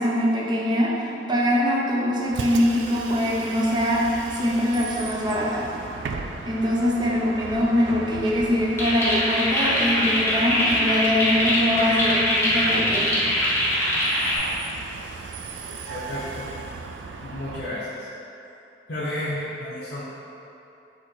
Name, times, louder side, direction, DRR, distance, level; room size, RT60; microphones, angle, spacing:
voice 1, 0.0-5.7 6.4-13.2, left 1 dB, 25° right, -4 dB, 0.6 m, -23 dB
Bus, 2.3-17.7, right 4 dB, 80° right, 0.3 m, -37 dB
sound 1, 8.8-14.4, equal, 15° left, 1.0 m, -22 dB
voice 2, 15.9-16.5 17.2-18.1 18.9-20.0, left 1 dB, 60° left, -11 dB, 0.8 m, -32 dB
4.2 x 2.8 x 4.4 m, 2.9 s
head